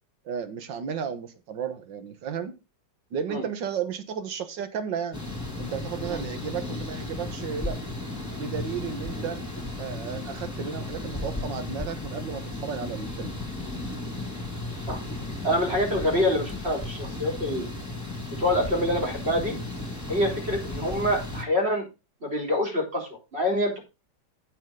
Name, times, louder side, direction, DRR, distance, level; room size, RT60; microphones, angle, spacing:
voice 1, 0.3-2.5 3.1-5.2 5.6-7.8 8.4-9.4 9.8-13.3, right 7 dB, 85° right, 1.9 m, -33 dB
sound 1, 5.1-21.4, left 2 dB, 10° left, 2.3 m, -35 dB
voice 2, 15.4-17.7 18.4-19.5 20.1-21.9 22.2-23.8, left 1 dB, 35° right, 4.4 m, -26 dB
15.5 x 5.5 x 3.8 m
omnidirectional pair, 2.0 m